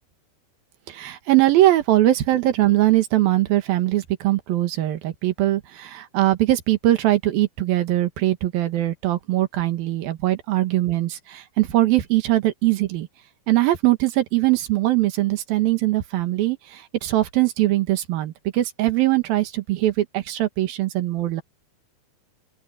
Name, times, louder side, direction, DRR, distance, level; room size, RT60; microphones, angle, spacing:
voice 1, 0.9-13.1 13.5-21.4, right 15 dB, 65° right, 3.0 m, -21 dB
open air
omnidirectional pair, 4.8 m